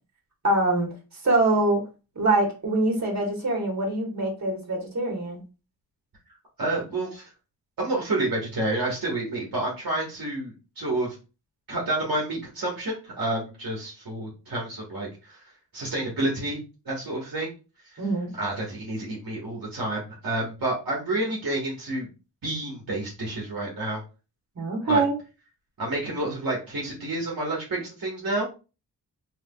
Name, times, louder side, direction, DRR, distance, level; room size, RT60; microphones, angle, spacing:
voice 1, 0.4-0.9 1.2-1.8 2.1-5.4 18.0-18.3 24.5-25.1, right 2 dB, 40° right, 0 dB, 1.6 m, -24 dB
voice 2, 6.6-7.3 7.8-11.1 11.7-15.4 15.7-16.6 16.8-17.5 17.9-18.0 18.3-22.1 22.4-24.0 24.9-25.0 25.8-28.5, right 2 dB, 55° right, -4 dB, 1.4 m, -29 dB
3.3 x 3.3 x 2.3 m, 0.31 s
cardioid pair, 65°, 41 cm